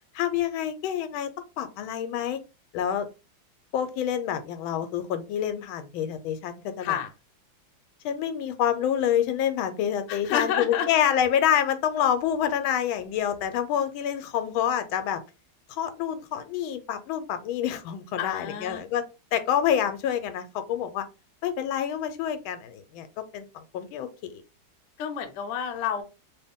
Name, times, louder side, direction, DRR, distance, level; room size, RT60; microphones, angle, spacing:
voice 1, 0.1-1.3 1.6-2.4 2.7-3.1 3.7-7.0 8.0-15.2 15.7-19.1 19.3-21.0 21.4-24.4, left 9 dB, 85° left, 10 dB, 1.4 m, -27 dB
voice 2, 10.1-10.9 18.2-18.8 25.0-26.0, left 8 dB, 70° left, 6 dB, 1.2 m, -29 dB
3.1 x 2.8 x 3.5 m, 0.29 s
omnidirectional pair, 2.2 m